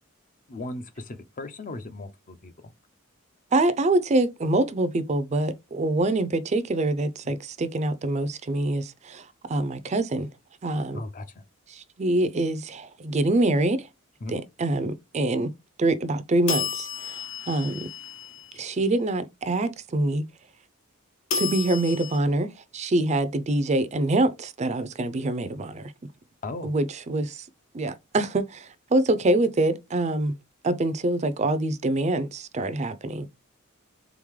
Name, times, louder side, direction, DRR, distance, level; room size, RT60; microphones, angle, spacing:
voice 1, 0.5-2.7 7.2-7.4 10.9-11.4 14.2-14.4 26.4-26.7, left 2 dB, 40° left, 0.6 m, -37 dB
voice 2, 3.5-10.3 10.6-11.0 11.7-13.9 14.3-15.5 15.8-17.9 18.5-20.2 21.3-25.9 26.6-27.5 27.7-30.3 30.6-33.3, right 2 dB, 30° right, 0.4 m, -25 dB
sound 1, 16.5-18.7 21.3-22.2, left 6 dB, 65° left, 1.1 m, -32 dB
3.8 x 3.7 x 3.1 m
head